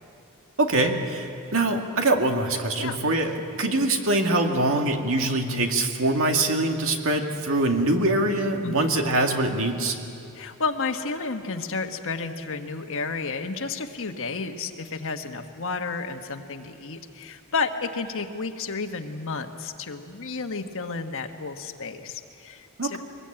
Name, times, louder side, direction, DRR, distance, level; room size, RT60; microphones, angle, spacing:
voice 1, 0.6-1.3 1.5-10.0 22.8-23.0, right 2 dB, 65° right, 3 dB, 2.1 m, -23 dB
voice 2, 8.6-9.0 10.3-23.0, left 4 dB, 65° left, 6 dB, 1.4 m, -31 dB
23.5 x 20.0 x 8.9 m, 2.5 s
head